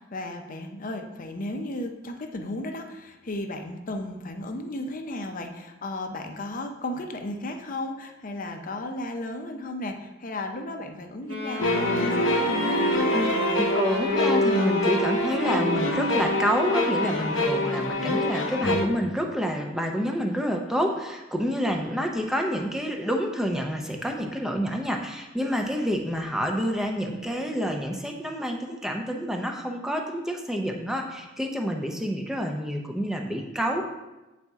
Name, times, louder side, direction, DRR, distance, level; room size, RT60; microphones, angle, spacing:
voice 1, 0.0-12.9, left 1 dB, 45° left, 5 dB, 0.6 m, -34 dB
Wind instrument woodwind instrument, 11.2-18.2, right 1 dB, 65° right, 1.4 m, -32 dB
sound 1, 11.6-18.9, left 2 dB, 75° left, 0.7 m, -25 dB
voice 2, 13.1-33.8, equal, 5° right, 2 dB, 0.6 m, -28 dB
8.1 x 4.2 x 3.5 m, 1.1 s
head